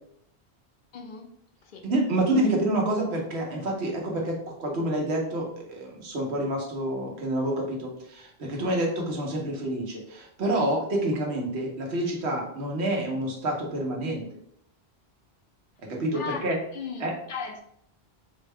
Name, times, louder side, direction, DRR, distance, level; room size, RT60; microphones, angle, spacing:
voice 1, 0.9-1.3 1.6-1.8 16.1-17.6, left 6 dB, 60° left, 3 dB, 0.6 m, -37 dB
voice 2, 1.8-14.2 15.9-16.6 17.0-17.1, right 1 dB, 90° right, -1 dB, 1.2 m, -28 dB
4.1 x 2.2 x 3.4 m, 0.71 s
omnidirectional pair, 1.1 m